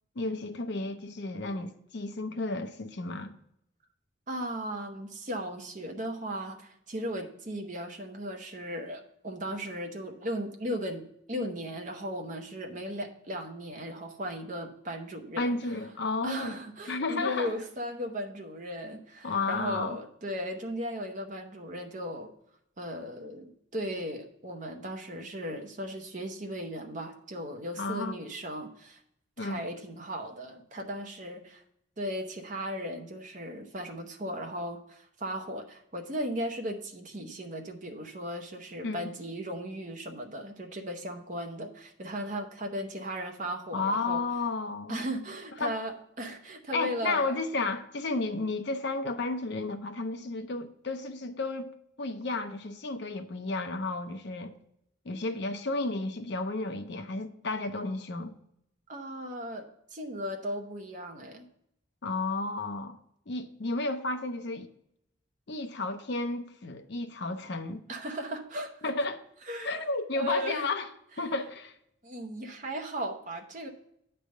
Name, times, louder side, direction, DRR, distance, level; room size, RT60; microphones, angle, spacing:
voice 1, 0.2-3.3 15.4-16.6 16.9-17.5 19.2-20.0 27.8-28.2 29.4-29.6 38.8-39.1 43.7-45.0 45.6-45.8 46.7-51.7 52.0-54.5 55.0-58.3 62.0-63.0 63.3-64.7 65.5-67.8 68.8-69.2 69.6-70.9 71.2-71.8, left 3 dB, 55° left, 0.6 m, -32 dB
voice 2, 4.3-15.5 16.2-22.3 22.8-29.0 29.4-31.6 32.0-44.2 44.9-47.3 58.9-61.5 67.9-68.9 69.5-69.7 70.1-70.7 72.0-73.7, equal, 40° right, 0.9 m, -36 dB
9.0 x 3.4 x 6.4 m
head